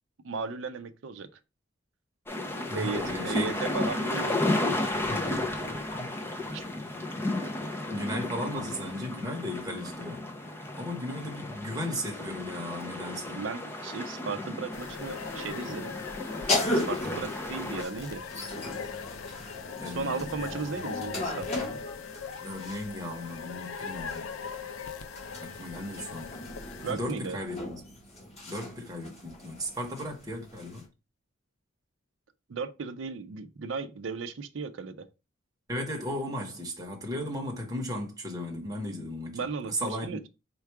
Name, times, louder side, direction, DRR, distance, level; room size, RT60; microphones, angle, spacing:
voice 1, 0.2-1.3 2.7-5.3 6.5-6.6 13.3-16.0 16.7-18.2 19.9-21.8 26.8-27.4 32.5-35.1 39.3-40.3, right 5 dB, 65° right, 0.5 m, -36 dB
sound 1, 2.3-17.8, left 2 dB, 10° left, 0.5 m, -33 dB
voice 2, 2.7-3.5 5.1-6.1 7.9-10.2 10.8-13.4 19.8-20.6 22.4-24.3 25.4-26.3 26.9-27.8 28.5-30.8 35.7-39.4 39.7-40.2, left 1 dB, 15° right, 0.9 m, -36 dB
sound 2, 14.7-26.9, left 6 dB, 90° left, 0.5 m, -40 dB
sound 3, 16.4-23.0 24.0-30.8, left 1 dB, 30° left, 1.2 m, -36 dB
4.5 x 2.3 x 4.5 m
head